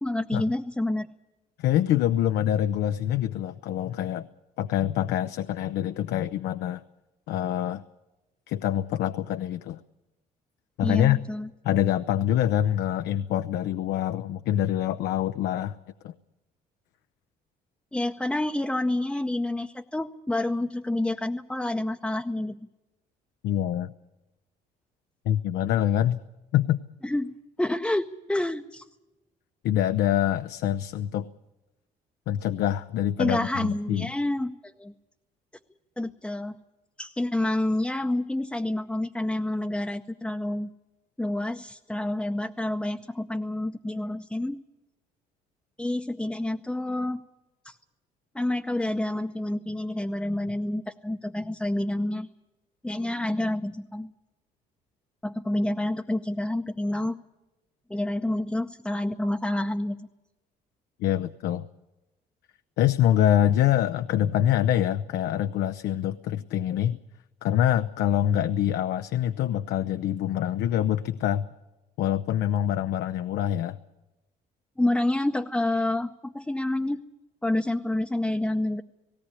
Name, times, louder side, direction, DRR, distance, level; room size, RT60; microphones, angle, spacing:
voice 1, 0.0-1.1 10.8-11.5 17.9-22.6 27.0-27.3 27.6-28.8 33.2-34.9 36.0-36.5 37.0-40.7 41.2-44.6 45.8-47.2 47.6-47.8 48.3-52.3 52.8-54.1 55.2-57.2 57.9-60.0 74.8-77.0 77.4-78.8, left 1 dB, 5° left, 4 dB, 0.7 m, -28 dB
voice 2, 1.6-4.3 4.6-6.8 7.3-7.8 8.5-9.8 10.8-11.2 11.6-15.8 16.0-16.1 23.4-23.9 25.3-26.2 26.5-26.8 29.6-31.3 32.3-34.1 61.0-61.7 62.8-67.0 67.4-71.5 72.0-73.8, left 11 dB, 75° left, 11 dB, 0.6 m, -25 dB
18.0 x 17.5 x 9.8 m, 1.0 s
cardioid pair, 110°, 17 cm